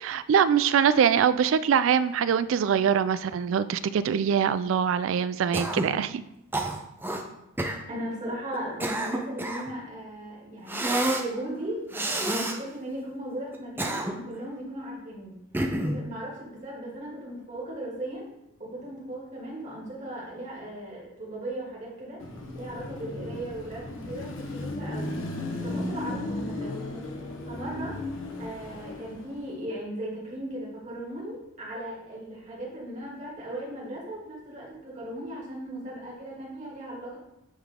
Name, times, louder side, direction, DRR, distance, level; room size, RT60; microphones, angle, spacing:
voice 1, 0.1-6.2, right 7 dB, 80° right, 15 dB, 0.3 m, -23 dB
Cough, 5.5-6.0 6.5-7.2 7.6-7.8 8.5-9.7 10.7-11.3 11.9-12.6 13.5-14.4 15.5-16.0, right 1 dB, 10° right, 0.5 m, -28 dB
voice 2, 7.9-15.4 15.8-18.3 18.6-22.2 22.5-25.1 25.6-26.7 27.5-28.0 28.4-37.2, right 1 dB, 35° right, -5 dB, 2.4 m, -37 dB
Car passing by / Traffic noise roadway noise / Engine, 22.2-29.5, left 2 dB, 75° left, 1.1 m, -35 dB
8.7 x 3.8 x 3.7 m, 0.87 s
head